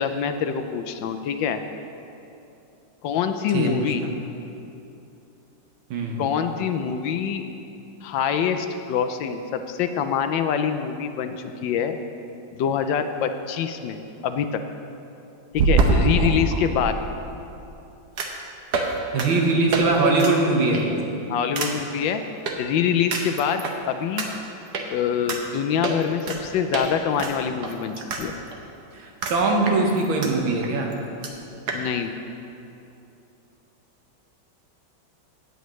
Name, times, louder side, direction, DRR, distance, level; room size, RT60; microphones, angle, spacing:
voice 1, 0.0-1.6 3.0-4.0 6.2-7.4 8.0-12.0 12.5-14.0 14.2-14.6 15.5-17.0 21.3-22.2 22.6-24.3 24.9-28.4 31.7-32.1, left 7 dB, 75° left, 7 dB, 1.2 m, -25 dB
voice 2, 3.5-3.9 5.9-6.2 19.1-21.0 28.9-30.9, right 3 dB, 85° right, 0 dB, 2.0 m, -21 dB
sound 1, 15.5-16.9 18.2-18.4 18.7-18.9 19.2-19.3 19.7-19.8 20.2-20.3 20.7-21.0 21.6-21.7 22.5-22.6 23.1-23.7 24.2-24.3 24.7-24.8 25.3-25.4 25.8-26.4 26.7-26.9 27.2-28.2 28.5-28.6 29.2-29.4 29.7-30.3 30.6-30.7 30.9-31.0 31.2-31.3 31.7-31.8, right 3 dB, 60° right, 1.4 m, -24 dB
16.5 x 8.0 x 3.1 m, 2.8 s
omnidirectional pair, 2.2 m